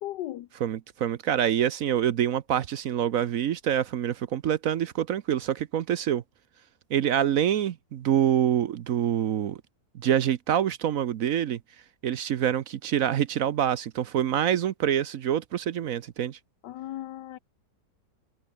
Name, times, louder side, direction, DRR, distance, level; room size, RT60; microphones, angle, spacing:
voice 1, 0.0-0.5 16.6-17.4, left 13 dB, 85° left, 1.4 m, -36 dB
voice 2, 0.6-6.2 6.9-9.6 9.9-11.6 12.0-16.4, right 10 dB, 60° right, 1.0 m, -26 dB
omnidirectional pair, 1.8 m